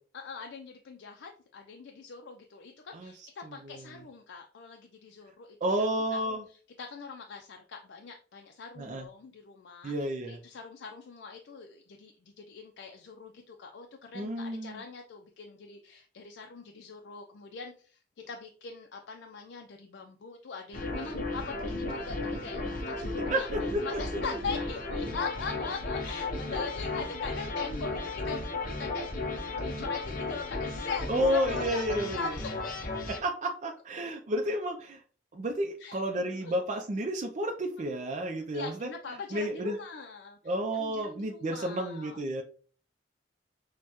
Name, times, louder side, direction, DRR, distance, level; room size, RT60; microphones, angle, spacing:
voice 1, 0.1-5.6 5.9-18.0 18.3-23.5 23.8-28.4 28.8-29.1 29.5-32.6 35.8-36.5 37.8-37.9 38.5-40.4 40.8-42.2, left 4 dB, 85° left, 3 dB, 0.5 m, -42 dB
voice 2, 3.4-3.9 5.6-6.4 8.8-9.1 9.8-10.4 14.1-14.8 23.0-23.1 23.3-23.8 26.5-26.6 31.1-32.3 33.1-35.0 35.3-38.9 39.3-39.8 40.4-42.4, right 1 dB, 40° right, 2 dB, 0.4 m, -31 dB
sound 1, 20.7-33.2, left 2 dB, 50° left, 0.8 m, -34 dB
6.3 x 2.2 x 2.9 m, 0.41 s
head